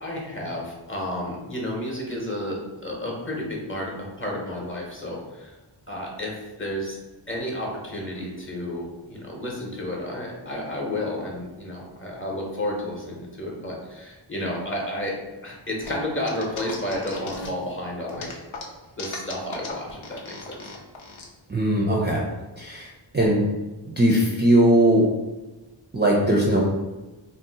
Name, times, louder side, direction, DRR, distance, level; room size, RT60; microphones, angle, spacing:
voice 1, 0.0-5.6 5.9-7.0 7.3-15.1 15.4-18.3 19.0-20.7, left 1 dB, 25° left, -2 dB, 0.8 m, -31 dB
sound 1, 15.8-17.7 18.1-21.2, left 3 dB, 75° left, 0.7 m, -38 dB
voice 2, 21.5-22.2 22.6-22.9 23.1-23.5 24.0-25.1 25.9-26.6, right 1 dB, 25° right, -4 dB, 0.4 m, -19 dB
2.7 x 2.1 x 3.9 m, 1.1 s
wide cardioid pair, 60°, 48 cm